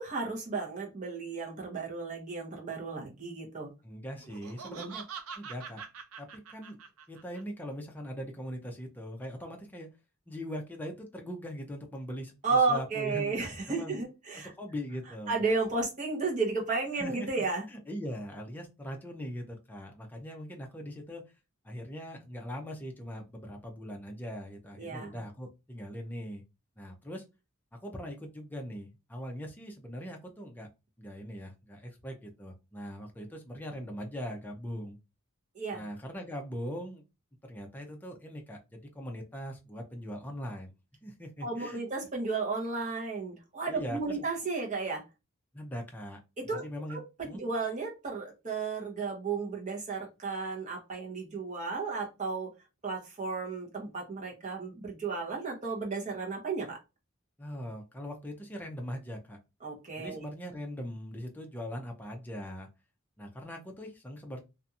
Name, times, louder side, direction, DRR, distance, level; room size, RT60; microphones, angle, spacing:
voice 1, 0.0-3.7 4.7-4.9 12.4-14.5 15.3-17.6 24.8-25.2 35.5-35.8 41.4-45.0 46.4-46.7 46.9-47.0 47.4-52.5 52.8-56.8 59.6-60.2, right 4 dB, 35° right, -1 dB, 0.9 m, -33 dB
voice 2, 3.8-5.1 5.4-5.8 6.2-6.8 7.1-9.9 10.3-13.4 13.7-14.0 14.4-15.4 16.9-21.2 21.6-26.4 26.8-27.2 27.7-30.7 31.0-35.0 35.7-37.0 37.4-40.7 41.0-41.8 43.7-44.3 45.5-46.2 46.5-47.4 57.4-59.4 60.0-62.7 63.2-64.4, equal, 10° left, 2 dB, 0.5 m, -41 dB
Laughter, 4.2-7.4, right 6 dB, 85° right, 0.5 m, -44 dB
2.7 x 2.5 x 2.3 m, 0.27 s
head